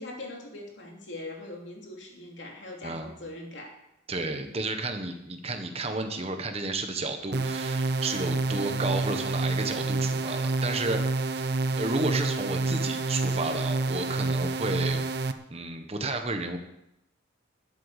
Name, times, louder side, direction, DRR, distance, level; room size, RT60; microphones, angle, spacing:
voice 1, 0.0-3.8, left 2 dB, 65° left, 1 dB, 3.1 m, -41 dB
voice 2, 2.8-3.1 4.1-11.1 11.3-11.5 11.8-15.0 15.5-16.6, right 2 dB, 30° right, 6 dB, 1.2 m, -32 dB
sound 1, 7.3-15.3, right 3 dB, 55° right, 0.8 m, -28 dB
12.0 x 8.2 x 8.2 m, 0.85 s
head